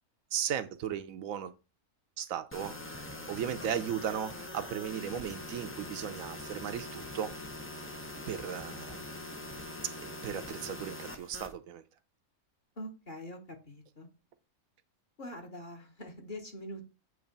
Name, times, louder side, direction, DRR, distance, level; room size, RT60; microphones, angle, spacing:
voice 1, 0.3-1.5 2.2-7.3 8.3-9.0 10.0-11.8, right 9 dB, 70° right, 1.0 m, -36 dB
sound 1, 2.5-11.5, left 1 dB, 20° left, 0.3 m, -43 dB
voice 2, 12.8-14.1 15.2-16.8, equal, 35° left, 1.3 m, -44 dB
7.9 x 3.2 x 5.2 m
omnidirectional pair, 1.5 m